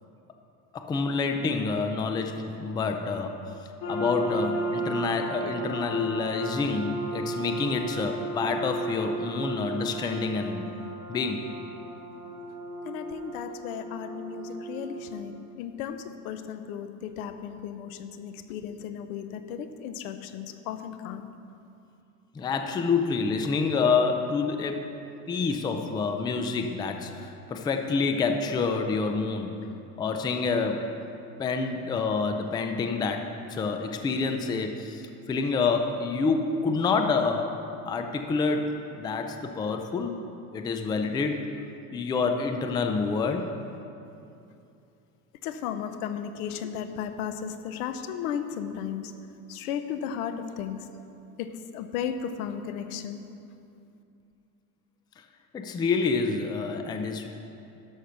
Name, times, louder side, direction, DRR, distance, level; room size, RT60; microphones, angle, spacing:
voice 1, 0.7-3.3 3.9-10.7 11.1-11.5 22.3-24.8 25.3-29.5 30.0-30.9 31.4-37.5 37.9-38.7 39.0-40.2 40.5-41.4 41.9-43.5 55.5-57.3, left 4 dB, 10° left, 5 dB, 0.4 m, -27 dB
sound 1, 3.8-15.0, right 2 dB, 45° left, 2.6 m, -34 dB
voice 2, 12.8-21.3 45.4-49.1 49.5-50.8 51.4-53.2, left 8 dB, 90° left, 9 dB, 0.9 m, -35 dB
11.5 x 6.5 x 5.7 m, 2.7 s
cardioid pair, 145°, 42 cm